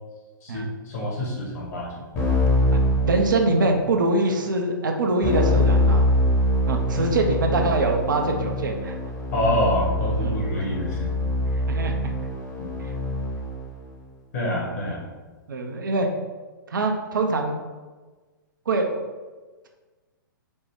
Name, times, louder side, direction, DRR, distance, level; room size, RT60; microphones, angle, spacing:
voice 1, 0.4-1.9 7.0-7.1 9.3-11.1 12.6-12.7 14.3-15.0, equal, 45° left, -4 dB, 1.3 m, -26 dB
Keyboard (musical), 2.2-3.8 5.2-13.6, left 1 dB, 25° left, 1.0 m, -24 dB
voice 2, 2.6-6.1 6.7-8.9 10.2-10.7 11.7-12.1 12.8-12.9 14.8-14.9 15.5-16.1 16.7-17.6 18.7-19.0, right 2 dB, 65° right, 3 dB, 0.5 m, -24 dB
4.0 x 2.2 x 3.4 m, 1.3 s
figure-of-eight pair, 115°, 11 cm